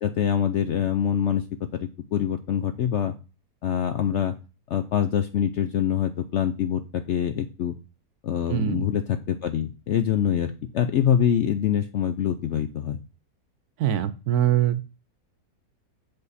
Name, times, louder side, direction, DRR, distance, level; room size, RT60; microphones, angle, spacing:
voice 1, 0.0-1.4 1.7-3.1 3.6-4.3 4.7-7.7 8.2-13.0, left 9 dB, 65° left, 8 dB, 0.7 m, -25 dB
voice 2, 8.5-8.9 13.8-14.8, right 11 dB, 75° right, 14 dB, 1.1 m, -23 dB
6.5 x 5.2 x 4.1 m, 0.31 s
omnidirectional pair, 1.7 m